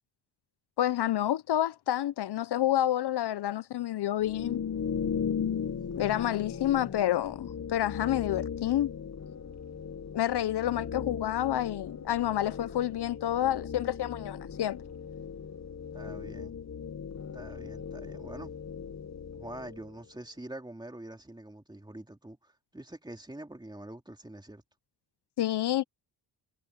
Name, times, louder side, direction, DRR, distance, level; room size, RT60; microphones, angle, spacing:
voice 1, 0.8-4.6 6.0-8.9 10.1-14.8 25.4-25.8, left 12 dB, 70° left, 0.6 m, -29 dB
sound 1, 4.2-20.0, left 7 dB, 40° left, 0.9 m, -37 dB
voice 2, 15.9-16.6 17.3-18.6 19.3-24.6, right 1 dB, 10° right, 2.9 m, -45 dB
wide cardioid pair, 140°, 42 cm